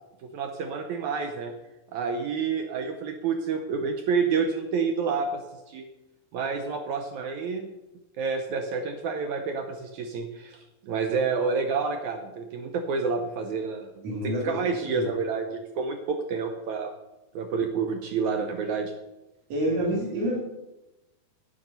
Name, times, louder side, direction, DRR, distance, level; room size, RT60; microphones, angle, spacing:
voice 1, 0.2-1.5 1.9-5.4 5.7-5.9 6.3-7.7 8.2-16.9 17.4-18.9, right 5 dB, 75° right, 5 dB, 1.8 m, -29 dB
voice 2, 14.0-15.1 19.5-20.4, right 1 dB, 50° right, -4 dB, 3.2 m, -28 dB
10.5 x 9.5 x 5.4 m, 0.98 s
omnidirectional pair, 4.3 m